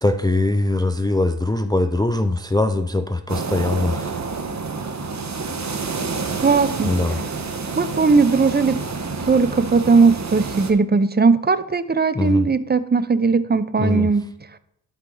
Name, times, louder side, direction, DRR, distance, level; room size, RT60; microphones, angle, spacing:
voice 1, 0.0-4.2 6.8-7.2 12.1-12.5 13.8-14.1, left 2 dB, 10° left, 8 dB, 0.5 m, -21 dB
sound 1, 3.3-10.7, right 4 dB, 40° right, 1.3 m, -28 dB
voice 2, 6.4-6.9 7.8-8.8 9.2-14.2, right 4 dB, 20° right, 13 dB, 0.8 m, -18 dB
11.5 x 4.5 x 3.9 m, 0.74 s
supercardioid pair, 50°, 45 cm